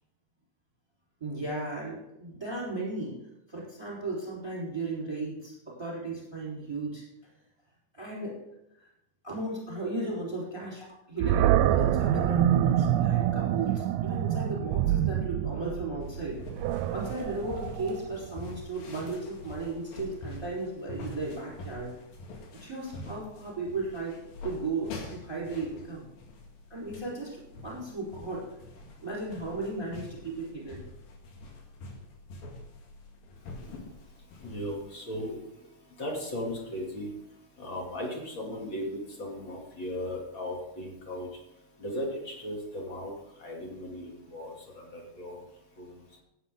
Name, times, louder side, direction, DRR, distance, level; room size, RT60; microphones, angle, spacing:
voice 1, 1.2-3.2 3.5-7.0 7.9-8.4 8.7-8.9 9.2-16.4 16.9-21.9 22.6-24.2 24.4-26.1 26.7-28.5 29.0-30.8, right 2 dB, 10° right, -4 dB, 3.9 m, -35 dB
Animal, 11.2-18.3, right 12 dB, 85° right, 2.2 m, -26 dB
sound 1, 16.0-34.8, left 2 dB, 85° left, 3.6 m, -46 dB
voice 2, 34.4-35.4 36.0-37.1 37.6-41.3 41.8-43.1 43.4-45.4 45.8-46.0, left 1 dB, 35° left, -1 dB, 3.1 m, -36 dB
15.5 x 9.4 x 3.8 m, 0.86 s
omnidirectional pair, 3.9 m